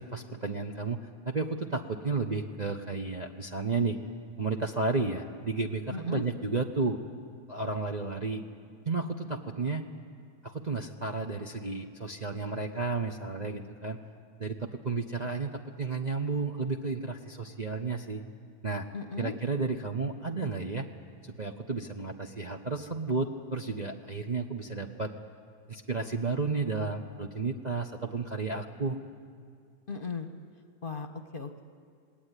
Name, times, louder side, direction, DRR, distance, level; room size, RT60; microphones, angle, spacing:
voice 1, 0.0-4.0 4.4-7.0 7.5-8.4 8.9-9.9 10.4-14.0 14.4-18.2 18.6-18.9 19.2-20.9 21.4-25.1 25.7-29.0, right 3 dB, 30° right, 1 dB, 0.9 m, -32 dB
voice 2, 5.9-6.2 18.9-19.4 29.9-30.3 30.8-31.6, left 5 dB, 35° left, 6 dB, 1.3 m, -37 dB
27.0 x 19.0 x 9.9 m, 2.2 s
omnidirectional pair, 1.8 m